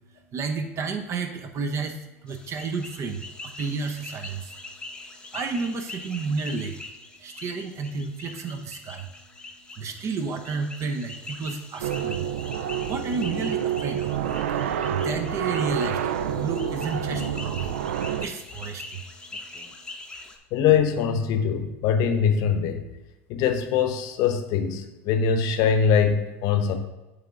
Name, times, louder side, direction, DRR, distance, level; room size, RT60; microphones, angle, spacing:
voice 1, 0.3-4.6 5.3-6.8 7.2-9.1 9.8-12.3 12.9-14.1 14.6-16.0 16.3-17.7 18.2-19.0, right 4 dB, 40° right, 7 dB, 0.8 m, -31 dB
sound 1, 2.3-20.4, left 2 dB, 10° left, 0.8 m, -43 dB
sound 2, 11.8-18.3, right 8 dB, 80° right, 0.3 m, -28 dB
voice 2, 20.5-22.9 23.3-26.7, left 7 dB, 60° left, 7 dB, 0.8 m, -22 dB
8.6 x 3.5 x 3.6 m, 1.0 s
hypercardioid pair, 85°, 7 cm